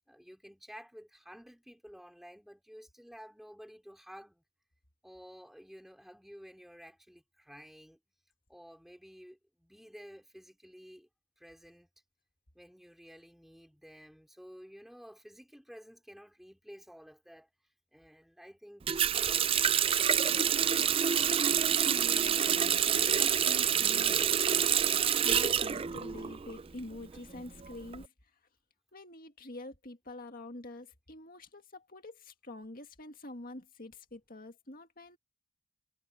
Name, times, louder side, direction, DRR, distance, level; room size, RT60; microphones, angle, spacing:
voice 1, 0.0-4.4 5.0-8.0 8.5-11.1 11.4-11.9 12.5-17.5 17.9-21.1, equal, ahead, 4.8 m, -52 dB
Water tap faucet, 18.9-26.6 26.9-28.0, right 8 dB, 25° right, 0.3 m, -27 dB
voice 2, 21.8-22.5 22.9-28.1 28.9-35.2, left 2 dB, 40° left, 2.1 m, -46 dB
head